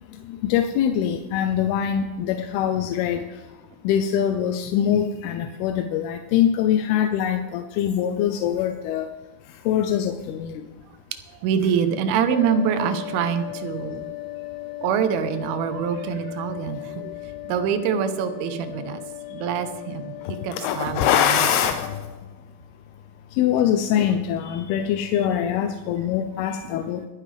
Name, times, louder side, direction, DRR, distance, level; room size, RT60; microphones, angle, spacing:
voice 1, 0.4-3.2 3.9-9.1 9.7-10.1 10.4-10.5 20.6-21.9 23.4-27.0, left 9 dB, 90° left, 7 dB, 2.7 m, -23 dB
voice 2, 11.4-14.0 14.8-17.0 17.4-19.0 19.3-20.1 20.4-21.1 21.4-21.5, right 7 dB, 80° right, 9 dB, 2.8 m, -25 dB
sound 1, 12.3-22.0, left 17 dB, 65° left, 2.0 m, -37 dB
23.0 x 10.0 x 3.4 m, 1.2 s
omnidirectional pair, 4.4 m